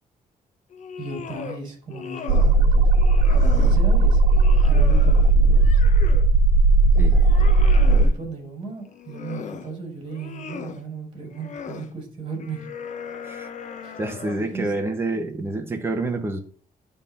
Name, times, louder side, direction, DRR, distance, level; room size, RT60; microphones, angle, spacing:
sound 1, 0.7-1.6 1.9-2.6 2.9-3.8 4.3-6.3 6.8-8.2 8.8-9.7 10.1-10.8 11.3-11.9 12.4-14.6, left 6 dB, 55° left, 1.0 m, -38 dB
voice 1, 1.0-2.9 3.3-4.2 4.6-5.6 7.9-12.7 13.8-14.0 14.5-14.7 15.1-15.3, right 4 dB, 35° right, 1 dB, 4.8 m, -35 dB
sound 2, 2.3-8.1, right 2 dB, 85° right, 1.0 m, -16 dB
voice 2, 14.0-16.4, right 2 dB, 15° right, 3 dB, 1.2 m, -28 dB
11.0 x 3.7 x 5.5 m, 0.43 s
cardioid pair, 135°, 15 cm